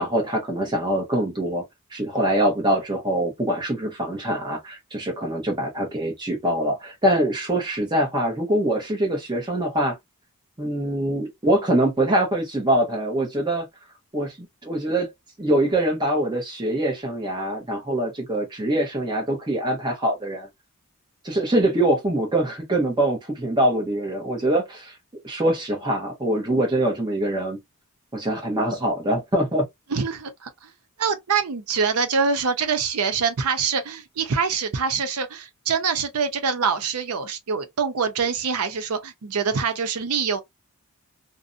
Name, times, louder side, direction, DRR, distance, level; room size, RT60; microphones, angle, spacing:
voice 1, 0.0-1.6 1.9-10.0 10.6-13.7 14.1-15.1 15.4-20.5 21.2-24.9 25.2-27.6 28.1-29.6, right 1 dB, 20° right, 0.8 m, -24 dB
voice 2, 29.9-30.7 31.0-40.4, right 5 dB, 90° right, 0.6 m, -25 dB
2.6 x 2.1 x 2.5 m
head